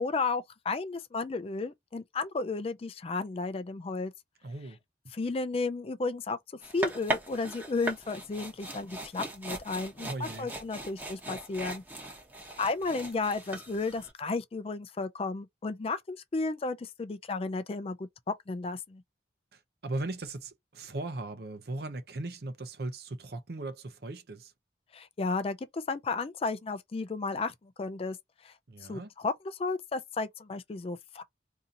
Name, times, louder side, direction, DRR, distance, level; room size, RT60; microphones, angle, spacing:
voice 1, 0.0-4.1 5.1-6.4 6.7-11.8 12.6-19.0 24.9-28.2 28.4-28.5 28.9-31.2, left 3 dB, 35° left, 0.4 m, -33 dB
voice 2, 4.4-4.8 5.0-5.1 10.0-10.5 19.5-24.5 28.7-29.1, right 2 dB, 60° right, 0.7 m, -38 dB
sound 1, 6.6-14.1, right 1 dB, 10° right, 0.8 m, -39 dB
2.7 x 2.7 x 3.7 m
head